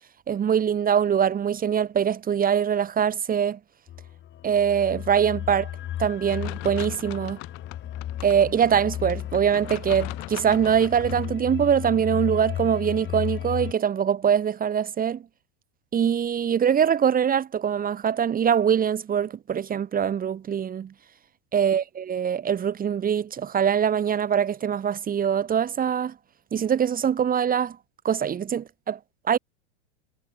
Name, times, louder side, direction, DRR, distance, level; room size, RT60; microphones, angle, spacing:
voice 1, 0.3-3.6 4.4-5.7 6.0-7.4 8.2-15.2 15.9-20.9 21.5-26.1 26.5-27.8 28.0-29.0 29.3-29.4, right 8 dB, 25° right, 2.4 m, -23 dB
sound 1, 3.9-13.7, left 11 dB, 35° left, 3.1 m, -34 dB
sound 2, 6.3-11.3, left 32 dB, 60° left, 4.6 m, -41 dB
hypercardioid pair, 115°, 35 cm